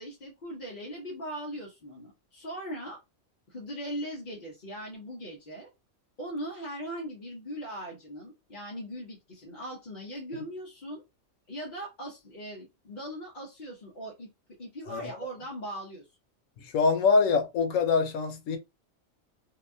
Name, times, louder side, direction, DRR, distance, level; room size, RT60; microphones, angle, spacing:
voice 1, 0.0-3.0 3.5-5.7 6.2-11.0 11.5-14.3 14.6-16.1, equal, 45° left, 0.8 m, -39 dB
voice 2, 16.6-18.6, left 4 dB, 85° left, 1.0 m, -24 dB
2.7 x 2.2 x 2.5 m
omnidirectional pair, 1.3 m